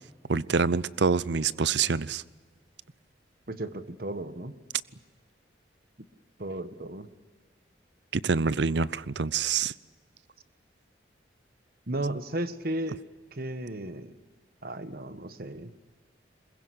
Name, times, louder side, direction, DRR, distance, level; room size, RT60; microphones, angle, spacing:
voice 1, 0.3-2.2 8.1-9.7, right 5 dB, 70° right, 0.6 m, -26 dB
voice 2, 3.5-4.6 6.4-7.1 11.9-13.0 13.3-14.2 14.6-15.7, right 1 dB, 55° right, 1.3 m, -34 dB
22.5 x 21.0 x 9.8 m
head